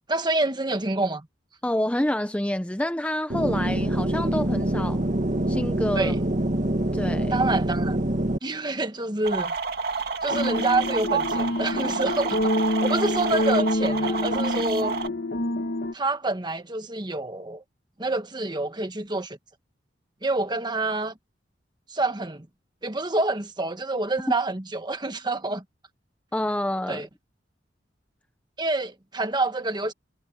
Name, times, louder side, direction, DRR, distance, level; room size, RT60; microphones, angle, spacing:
voice 1, 0.1-1.3 5.9-6.2 7.3-8.0 8.4-9.5 10.2-15.0 15.9-17.6 18.0-19.4 20.2-21.1 21.9-22.5 22.8-25.6 26.9-27.1 28.6-29.9, right 2 dB, 25° right, 1.4 m, -27 dB
voice 2, 1.6-5.0 5.5-6.1 6.9-7.3 26.3-27.0, left 1 dB, 5° left, 0.6 m, -27 dB
sound 1, 3.3-8.4, right 1 dB, 40° right, 1.4 m, -25 dB
sound 2, 9.2-15.1, right 5 dB, 60° right, 2.3 m, -29 dB
sound 3, 10.3-15.9, left 1 dB, 55° left, 1.3 m, -27 dB
head